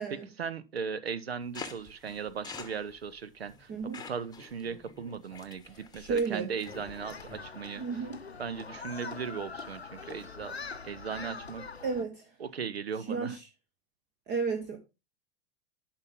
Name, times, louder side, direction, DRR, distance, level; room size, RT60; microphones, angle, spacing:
voice 1, 0.0-8.0 8.4-10.5 10.8-11.6 12.4-13.4, right 6 dB, 75° right, 0.9 m, -38 dB
sound 1, 1.5-7.4, left 5 dB, 10° left, 1.1 m, -47 dB
voice 2, 3.7-4.0 5.9-6.5 7.8-8.2 11.8-12.3 13.1-13.4 14.3-14.8, right 5 dB, 35° right, 1.4 m, -32 dB
Human group actions, 6.6-12.0, left 4 dB, 90° left, 0.6 m, -43 dB
10.5 x 5.8 x 3.6 m
figure-of-eight pair, 85°, 31 cm